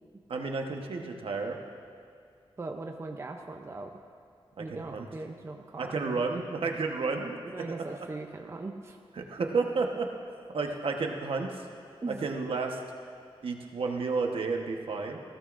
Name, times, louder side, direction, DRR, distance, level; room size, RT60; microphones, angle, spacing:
voice 1, 0.3-1.6 4.6-5.1 5.8-7.5 9.1-10.1 10.5-11.7 12.1-12.8 13.4-15.2, right 4 dB, 70° right, 2 dB, 1.2 m, -31 dB
voice 2, 2.6-3.9 4.6-6.4 7.5-9.0 12.0-12.2, right 3 dB, 30° right, 3 dB, 0.6 m, -40 dB
20.0 x 15.5 x 2.6 m, 2.3 s
wide cardioid pair, 150°, 10 cm